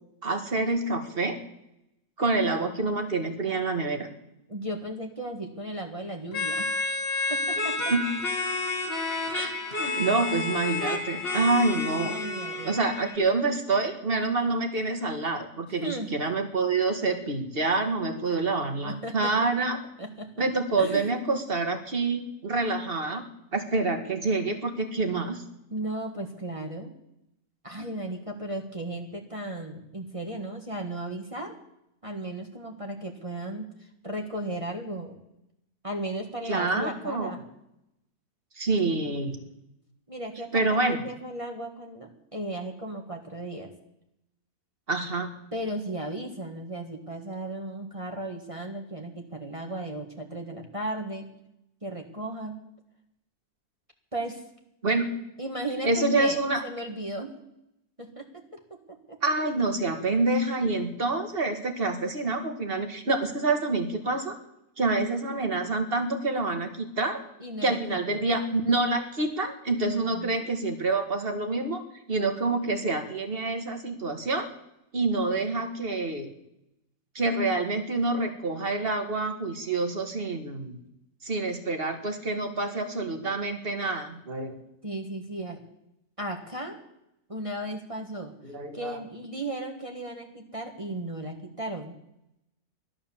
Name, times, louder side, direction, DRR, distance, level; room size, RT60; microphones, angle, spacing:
voice 1, 0.2-1.4 2.2-4.1 7.9-8.1 9.3-9.5 9.8-12.2 12.6-19.8 20.4-23.2 23.5-25.4 36.4-37.3 38.6-39.4 40.5-41.0 44.9-45.3 54.8-55.1 55.8-56.6 59.2-64.4 64.8-67.2 67.6-71.8 72.1-74.5 74.9-76.3 77.2-80.8 81.2-84.6 88.4-89.0, right 3 dB, 35° right, 6 dB, 1.9 m, -27 dB
voice 2, 4.5-6.7 7.3-7.7 10.6-10.8 12.0-12.8 15.8-16.1 18.3-18.5 18.8-19.3 20.0-20.3 20.8-21.1 25.7-26.9 27.6-31.5 32.0-33.7 34.0-35.2 35.8-37.4 40.1-43.7 45.5-51.3 51.8-52.6 54.1-54.4 55.4-57.3 58.0-59.2 67.4-68.2 69.9-70.5 84.8-85.6 86.2-86.8 87.3-88.3 88.7-92.0, right 1 dB, 20° right, 2 dB, 1.6 m, -35 dB
sound 1, 6.3-13.2, left 3 dB, 35° left, 1.8 m, -30 dB
15.5 x 12.0 x 7.2 m, 0.84 s
omnidirectional pair, 1.8 m